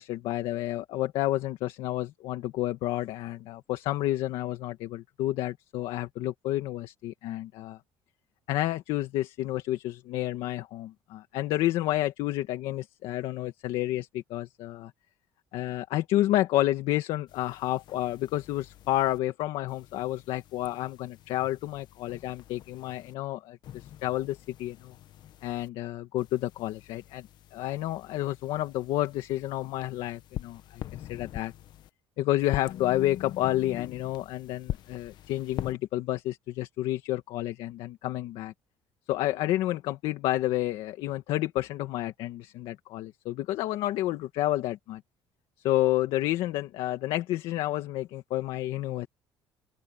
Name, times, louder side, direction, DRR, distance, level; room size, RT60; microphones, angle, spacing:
voice 1, 0.0-7.8 8.5-14.9 15.5-25.0 25.4-31.5 32.2-38.5 39.1-45.0 45.6-49.1, left 15 dB, 80° left, 1.7 m, -30 dB
sound 1, 17.3-19.2 19.7-23.1 23.6-25.7 26.2-31.9 32.4-35.7, left 12 dB, 55° left, 1.1 m, -43 dB
open air
cardioid pair, 160°, 9 cm